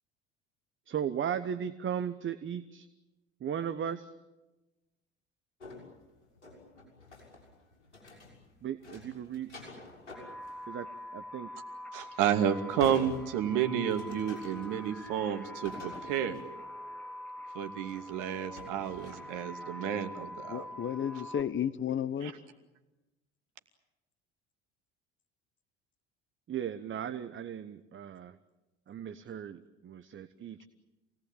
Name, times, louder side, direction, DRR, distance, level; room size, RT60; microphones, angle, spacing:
voice 1, 0.9-2.9 3.4-4.1 8.6-9.5 10.7-11.5 26.5-28.4 28.9-30.6, right 8 dB, 35° right, 1.1 m, -36 dB
sound 1, 5.6-8.5 8.8-10.6 11.0-11.1 12.0-16.4 17.5-18.2 18.6-19.1, left 3 dB, 85° left, 6.5 m, -48 dB
sound 2, 10.1-21.4, left 1 dB, 5° left, 2.6 m, -45 dB
voice 2, 11.9-16.4 17.5-20.7 22.2-22.3, right 9 dB, 60° right, 2.6 m, -31 dB
voice 3, 20.5-22.3, left 9 dB, 35° left, 1.2 m, -33 dB
27.5 x 18.5 x 9.1 m
hypercardioid pair, 65°, 34 cm